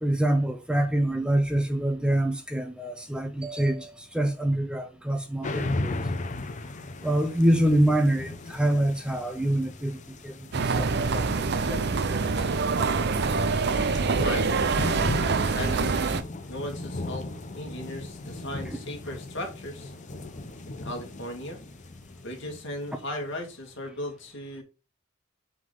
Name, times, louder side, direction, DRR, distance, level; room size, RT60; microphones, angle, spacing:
voice 1, 0.0-5.9 7.0-11.9, right 1 dB, 5° right, 0.6 m, -26 dB
sound 1, 5.4-23.2, left 2 dB, 35° left, 0.7 m, -37 dB
sound 2, 10.5-16.2, right 4 dB, 55° right, 0.6 m, -25 dB
voice 2, 13.7-14.8 15.0-16.2 16.5-17.3 17.6-19.9 20.6-21.6 22.2-24.6, left 1 dB, 60° left, 2.0 m, -37 dB
7.6 x 3.8 x 3.8 m
head